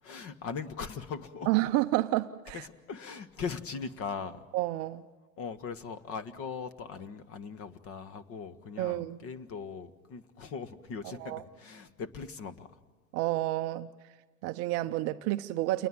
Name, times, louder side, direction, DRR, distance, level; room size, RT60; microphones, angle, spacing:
voice 1, 0.0-1.5 2.5-4.4 5.4-12.8, left 5 dB, 30° left, 12 dB, 1.6 m, -40 dB
voice 2, 1.5-2.7 4.5-5.0 8.8-9.2 11.2-11.4 13.1-13.9 14.4-15.9, right 17 dB, 30° right, 9 dB, 0.7 m, -29 dB
29.0 x 20.5 x 7.7 m, 1.3 s
hypercardioid pair, 115°, 46 cm